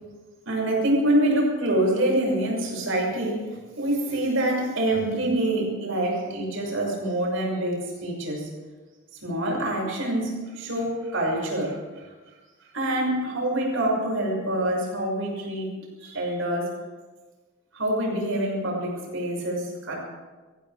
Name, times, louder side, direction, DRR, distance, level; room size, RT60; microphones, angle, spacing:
voice 1, 0.4-3.5 3.8-8.5 9.2-12.1 12.6-15.7 16.0-16.7 17.7-19.9, right 1 dB, 80° right, -2 dB, 6.5 m, -26 dB
25.0 x 15.5 x 3.6 m, 1.3 s
head